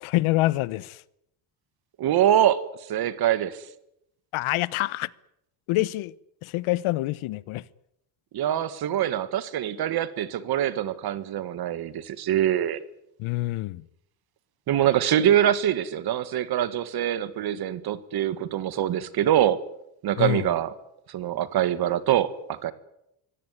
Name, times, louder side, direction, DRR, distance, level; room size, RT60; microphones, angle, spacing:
voice 1, 0.0-1.0 4.3-5.1 5.7-6.1 6.4-7.6 13.2-13.8 20.2-20.5, left 17 dB, 80° left, 1.0 m, -26 dB
voice 2, 2.0-2.6 2.9-3.6 8.3-12.8 14.7-19.6 20.0-20.7 21.1-22.7, right 11 dB, 50° right, 1.7 m, -24 dB
24.0 x 17.0 x 9.7 m
cardioid pair, 180°, 48 cm